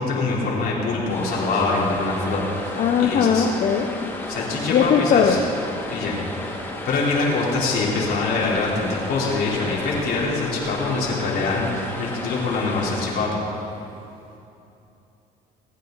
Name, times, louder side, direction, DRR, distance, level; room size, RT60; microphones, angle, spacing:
voice 1, 0.0-3.5 4.3-5.4 5.9-6.2 6.4-6.6 6.8-13.4, left 3 dB, 70° left, -4 dB, 3.9 m, -24 dB
sound 1, 1.1-13.1, left 1 dB, 10° left, 3.1 m, -33 dB
voice 2, 2.8-3.9 4.7-5.4, left 7 dB, 55° left, 4 dB, 0.9 m, -19 dB
25.0 x 9.4 x 4.0 m, 2.8 s
cardioid pair, 110°, 17 cm